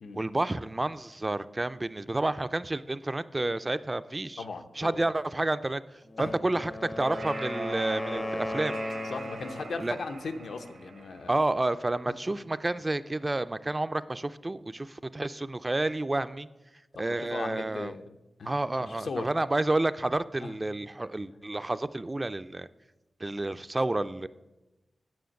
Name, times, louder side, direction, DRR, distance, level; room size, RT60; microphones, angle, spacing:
voice 1, 0.1-4.4 4.8-8.8 9.8-10.0 11.3-16.5 17.0-17.9 18.5-22.7 23.2-24.3, right 2 dB, 20° right, 13 dB, 0.3 m, -30 dB
voice 2, 4.4-5.0 6.2-6.3 9.0-11.4 12.1-12.2 16.9-19.3 20.4-20.5, left 4 dB, 80° left, 7 dB, 0.7 m, -38 dB
Wind instrument woodwind instrument, 6.1-9.9, left 2 dB, 30° left, 0.5 m, -36 dB
sound 1, 6.8-12.3, right 4 dB, 80° right, 0.9 m, -42 dB
9.3 x 7.1 x 6.3 m, 1.0 s
wide cardioid pair, 110°, 0 cm